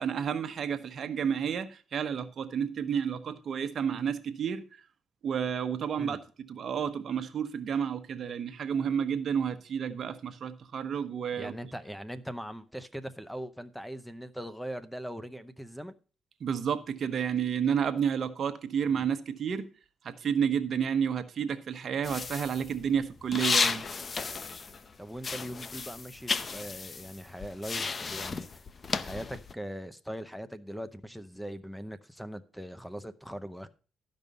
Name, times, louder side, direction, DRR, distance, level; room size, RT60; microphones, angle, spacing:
voice 1, 0.0-4.8 5.2-6.2 6.5-11.5 16.4-19.7 20.0-23.9, right 7 dB, 55° right, 1.0 m, -31 dB
voice 2, 11.4-15.9 25.0-28.7 29.0-33.7, equal, ahead, 0.7 m, -41 dB
sound 1, 22.0-24.9 25.2-29.5, left 4 dB, 40° left, 0.6 m, -33 dB
12.0 x 5.4 x 5.3 m
cardioid pair, 90°, 0 cm